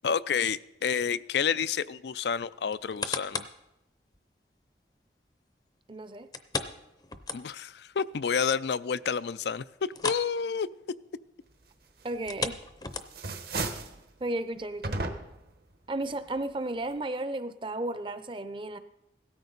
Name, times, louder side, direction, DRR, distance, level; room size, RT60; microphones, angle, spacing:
voice 1, 0.0-3.4 7.3-10.7, left 6 dB, 75° left, 16 dB, 0.4 m, -29 dB
sound 1, 2.7-3.6 4.1-4.2 6.3-7.8 8.1-8.2 8.7-8.8 9.9-10.3 10.6-10.8 12.1-13.4 14.0-14.1, left 4 dB, 20° left, 0.6 m, -35 dB
voice 2, 5.9-6.3 12.0-12.6 14.2-15.0 15.9-18.8, right 2 dB, 30° right, 11 dB, 0.6 m, -33 dB
sound 2, 12.3-12.7 13.0-14.0 14.8-15.5, right 3 dB, 60° right, 1.1 m, -34 dB
16.5 x 13.5 x 4.0 m, 0.89 s
head